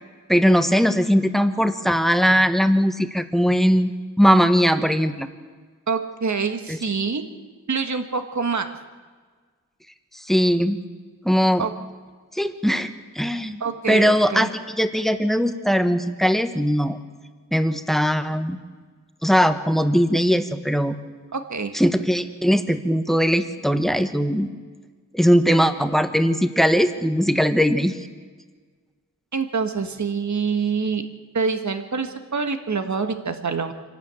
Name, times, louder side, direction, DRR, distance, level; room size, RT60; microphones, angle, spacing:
voice 1, 0.3-3.9 4.2-5.3 6.7-6.8 10.3-10.8 11.2-11.7 12.3-12.9 13.1-13.6 13.9-17.0 17.5-18.6 19.2-20.9 21.7-24.5 25.1-28.0, equal, ahead, 9 dB, 1.2 m, -20 dB
voice 2, 5.9-7.2 7.7-8.7 11.6-11.7 13.6-14.5 21.3-21.7 29.3-31.0 31.3-33.7, right 5 dB, 65° right, 7 dB, 1.7 m, -25 dB
25.5 x 12.5 x 9.0 m, 1.5 s
wide cardioid pair, 95°, 31 cm